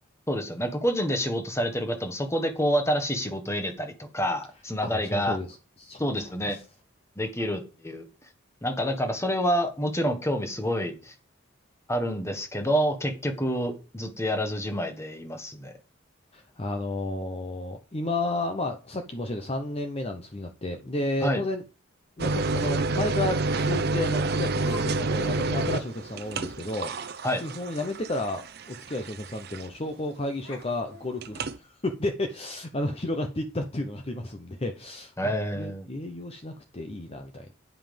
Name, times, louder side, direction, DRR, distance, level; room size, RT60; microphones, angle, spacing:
voice 1, 0.3-5.4 6.0-6.6 7.2-8.0 8.6-11.1 11.9-15.7 21.2-21.4 27.2-27.4 35.2-35.9, equal, 15° left, 1.3 m, -28 dB
voice 2, 4.8-6.6 16.3-21.6 22.2-37.5, left 2 dB, 30° left, 0.8 m, -32 dB
sound 1, 22.2-29.9 31.2-31.6, right 3 dB, 50° right, 0.6 m, -29 dB
Laughter, 22.3-22.8 23.6-23.7 24.6-24.9 25.2-25.3 25.8-25.9 26.2-26.4 28.3-28.4 28.7-28.8 29.7-30.0 30.4-32.0, left 2 dB, 80° left, 2.8 m, -47 dB
9.6 x 5.6 x 5.2 m
head